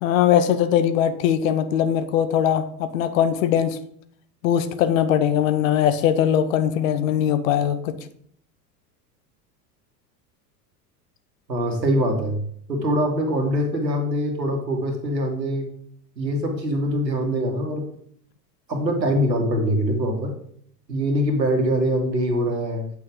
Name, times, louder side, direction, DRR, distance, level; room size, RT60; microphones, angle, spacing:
voice 1, 0.0-3.8 4.4-7.9, left 9 dB, 50° left, 11 dB, 0.9 m, -20 dB
voice 2, 11.5-12.4 12.7-15.7 16.2-17.9 18.7-20.3 20.9-22.8, equal, 80° right, 3 dB, 1.9 m, -23 dB
8.6 x 6.2 x 3.7 m, 0.63 s
figure-of-eight pair, 80°, 50 cm